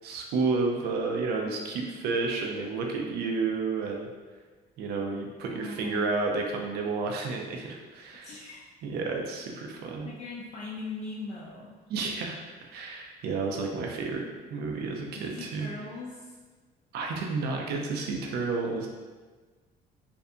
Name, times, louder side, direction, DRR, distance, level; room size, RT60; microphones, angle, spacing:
voice 1, 0.0-4.1 4.8-8.3 8.8-10.1 11.9-12.4 12.7-14.2 14.5-15.7 16.9-18.9, right 4 dB, 70° right, 1 dB, 0.4 m, -31 dB
voice 2, 5.5-6.3 8.2-8.6 10.0-11.8 15.1-16.4, left 3 dB, 45° left, -5 dB, 0.4 m, -40 dB
2.6 x 2.4 x 2.2 m, 1.4 s
cardioid pair, 110°, 17 cm